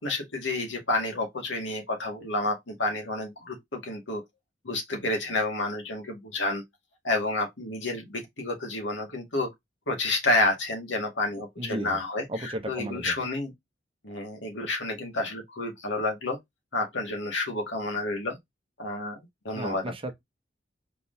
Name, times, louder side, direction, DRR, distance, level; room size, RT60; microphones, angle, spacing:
voice 1, 0.0-4.2 4.6-6.6 7.0-9.5 9.9-13.5 14.0-16.4 16.7-18.4 18.8-19.8, left 2 dB, 75° left, 2.0 m, -30 dB
voice 2, 11.6-12.0 12.3-13.1 19.5-20.1, right 1 dB, 30° right, 0.9 m, -34 dB
4.4 x 3.7 x 2.7 m
head